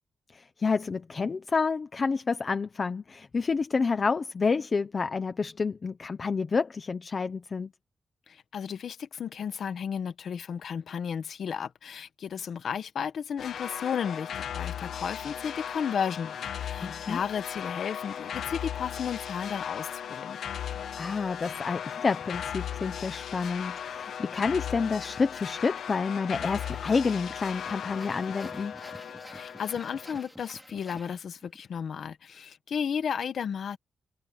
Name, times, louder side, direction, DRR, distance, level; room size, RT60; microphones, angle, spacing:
voice 1, 0.3-7.7 16.8-17.2 20.7-28.7, left 4 dB, 35° left, 0.9 m, -29 dB
voice 2, 8.3-20.4 29.3-33.8, left 7 dB, 65° left, 1.4 m, -34 dB
sound 1, 13.4-30.2, left 9 dB, 85° left, 1.2 m, -37 dB
sound 2, 26.4-31.6, equal, ahead, 4.3 m, -49 dB
wide cardioid pair, 155°, 0 cm